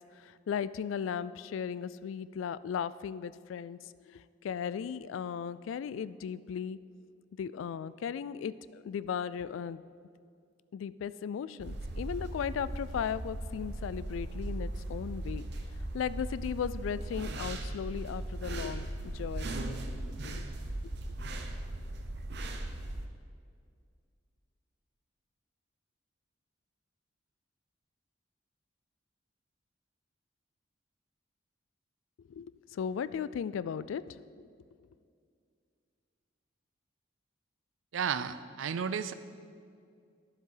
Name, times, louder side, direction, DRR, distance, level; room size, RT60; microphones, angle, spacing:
voice 1, 0.2-6.8 7.4-9.8 10.7-15.5 15.9-19.5 19.9-20.0 20.2-20.4 32.3-34.5, left 7 dB, 85° left, 18 dB, 0.3 m, -36 dB
sound 1, 11.6-23.1, right 1 dB, 60° right, 0.7 m, -38 dB
voice 2, 37.9-39.1, right 7 dB, 90° right, 13 dB, 0.4 m, -33 dB
11.0 x 7.4 x 3.9 m, 2.3 s
head